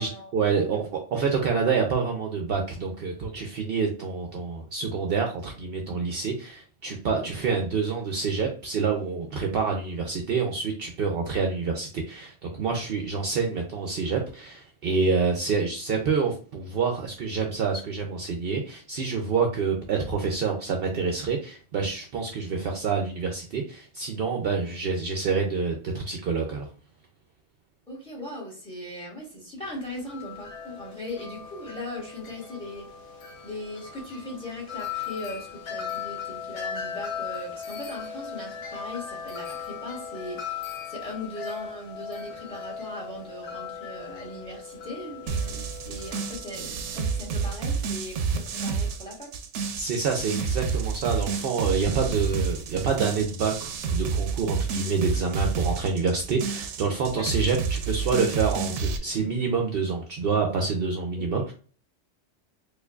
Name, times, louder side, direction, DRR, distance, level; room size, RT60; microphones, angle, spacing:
voice 1, 0.0-26.7 49.7-61.5, right 5 dB, 65° right, 2 dB, 0.7 m, -27 dB
voice 2, 27.9-32.9 33.4-49.3 57.1-57.3 61.1-61.2, left 1 dB, 5° left, -2 dB, 1.4 m, -39 dB
Wind chime, 29.6-47.5, left 7 dB, 65° left, 0.9 m, -38 dB
sound 1, 45.3-59.0, right 5 dB, 85° right, 0.9 m, -30 dB
4.5 x 2.5 x 2.3 m, 0.41 s
omnidirectional pair, 1.2 m